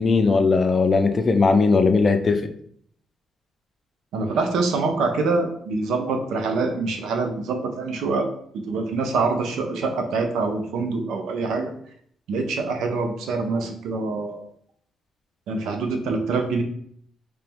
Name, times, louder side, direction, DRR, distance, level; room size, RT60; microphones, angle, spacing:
voice 1, 0.0-2.4, left 4 dB, 35° left, 7 dB, 0.4 m, -18 dB
voice 2, 4.1-8.3 8.7-11.7 12.3-14.4 15.5-16.6, right 3 dB, 80° right, 5 dB, 0.6 m, -25 dB
3.3 x 3.0 x 3.3 m, 0.65 s
cardioid pair, 90°, 0 cm